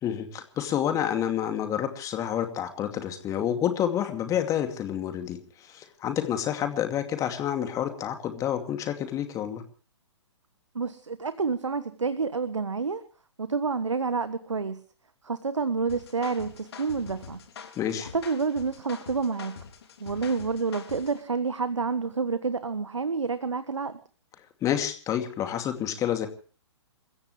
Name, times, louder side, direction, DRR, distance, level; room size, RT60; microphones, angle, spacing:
voice 1, 0.0-9.6 17.8-18.1 24.6-26.3, left 10 dB, 20° left, 7 dB, 2.6 m, -29 dB
voice 2, 10.7-13.0 13.4-14.8 15.2-17.4 18.0-19.6 20.0-24.0, right 4 dB, 80° right, 13 dB, 1.3 m, -29 dB
sound 1, 15.9-21.2, left 7 dB, 55° left, 3.7 m, -45 dB
28.5 x 15.5 x 3.3 m, 0.40 s
figure-of-eight pair, 120°, 15 cm